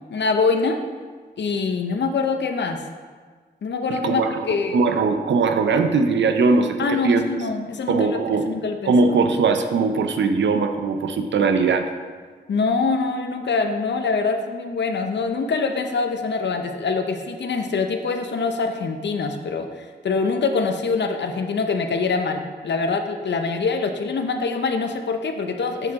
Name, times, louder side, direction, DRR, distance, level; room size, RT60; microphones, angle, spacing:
voice 1, 0.1-0.8 1.4-2.8 3.6-4.8 6.8-8.2 8.5-8.9 12.5-25.9, left 4 dB, 75° left, 6 dB, 0.6 m, -24 dB
voice 2, 3.9-4.5 4.7-7.2 7.9-8.5 8.9-11.9, right 4 dB, 90° right, 7 dB, 0.5 m, -20 dB
7.9 x 4.7 x 3.6 m, 1.5 s
cardioid pair, 60°, 18 cm